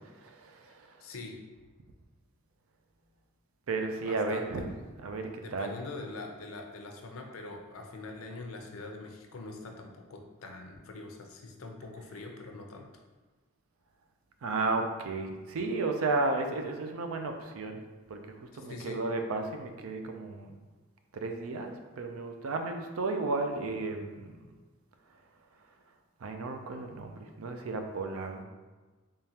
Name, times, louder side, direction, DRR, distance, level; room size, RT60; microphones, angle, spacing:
voice 1, 0.4-0.9 3.7-4.7 5.0-5.7 14.4-17.8 18.1-18.2 18.6-20.5 21.1-24.3 26.2-28.4, right 3 dB, 85° right, 5 dB, 0.4 m, -33 dB
voice 2, 1.0-1.4 4.0-4.7 5.4-12.8 18.5-19.0, left 3 dB, 85° left, 3 dB, 0.6 m, -43 dB
3.6 x 3.4 x 2.8 m, 1.3 s
head